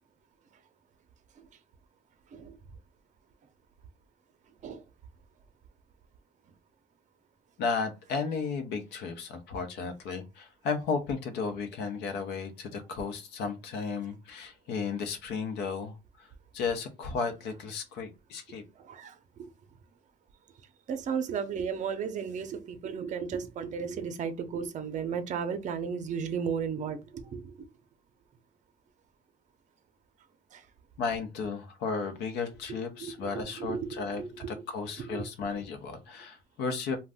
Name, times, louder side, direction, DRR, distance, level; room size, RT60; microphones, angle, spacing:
voice 1, 7.6-16.3 16.5-18.6 31.0-37.0, left 5 dB, 85° left, 0.7 m, -34 dB
voice 2, 18.8-19.5 20.9-27.6 30.5-30.6 33.0-34.6 35.0-35.3, right 6 dB, 45° right, 0.6 m, -35 dB
2.6 x 2.2 x 3.4 m
cardioid pair, 110°, 17 cm